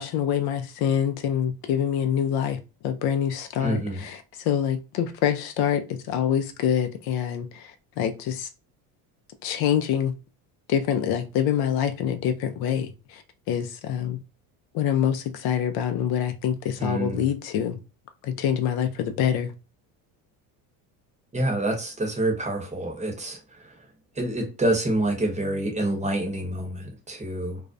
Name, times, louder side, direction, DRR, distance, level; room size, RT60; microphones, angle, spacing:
voice 1, 0.0-2.6 2.8-4.1 4.5-5.8 6.1-7.5 8.0-8.5 9.4-10.1 10.7-12.9 13.5-14.2 14.7-17.8 18.3-19.5, left 9 dB, 60° left, 0.5 m, -25 dB
voice 2, 3.6-4.1 16.8-17.3 21.3-23.8 24.1-27.6, right 1 dB, 15° right, 0.8 m, -27 dB
2.4 x 2.0 x 2.4 m
supercardioid pair, 100°, 42 cm